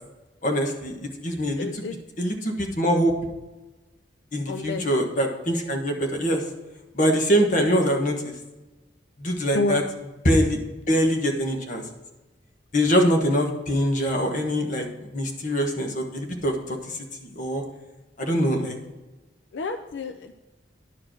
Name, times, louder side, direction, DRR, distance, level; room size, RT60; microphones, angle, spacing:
voice 1, 0.4-1.7 2.2-3.1 4.3-6.4 6.9-8.3 9.2-9.8 10.2-10.6 10.9-11.8 12.7-17.6 18.2-18.8, equal, 45° left, 3 dB, 1.3 m, -23 dB
voice 2, 1.6-2.1 4.5-4.9 9.5-9.8 19.5-20.3, left 3 dB, 80° left, 7 dB, 0.5 m, -29 dB
10.5 x 4.8 x 6.2 m, 1.1 s
head